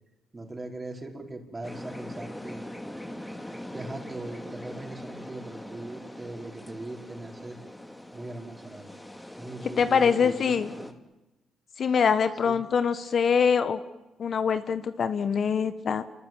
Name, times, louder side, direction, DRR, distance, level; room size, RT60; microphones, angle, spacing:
voice 1, 0.3-2.7 3.7-7.6 8.1-9.0 9.4-10.9 12.5-12.6, right 2 dB, 20° right, 2 dB, 4.7 m, -40 dB
sound 1, 1.6-10.9, left 1 dB, 10° left, 2.3 m, -42 dB
voice 2, 9.8-10.7 11.8-13.8 14.2-16.0, left 6 dB, 50° left, 11 dB, 1.3 m, -24 dB
27.5 x 23.5 x 7.7 m, 1.0 s
cardioid pair, 90°, 0 cm